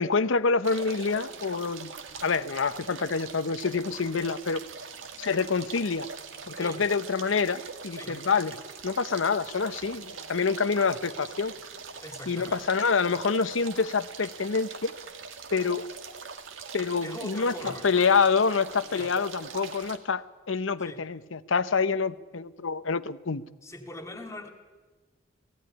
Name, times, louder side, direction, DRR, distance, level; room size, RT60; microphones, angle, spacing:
voice 1, 0.0-1.9 2.2-4.6 5.2-6.1 6.5-8.6 8.8-11.5 12.3-14.9 15.5-15.9 16.7-23.4, left 5 dB, 85° left, 15 dB, 0.8 m, -27 dB
sound 1, 0.6-20.0, right 5 dB, 85° right, 1.8 m, -42 dB
voice 2, 11.9-12.8 17.0-17.9 18.9-19.1 20.8-21.0 23.6-24.5, left 1 dB, 15° left, 5 dB, 2.3 m, -41 dB
16.5 x 16.5 x 10.0 m, 1.2 s
head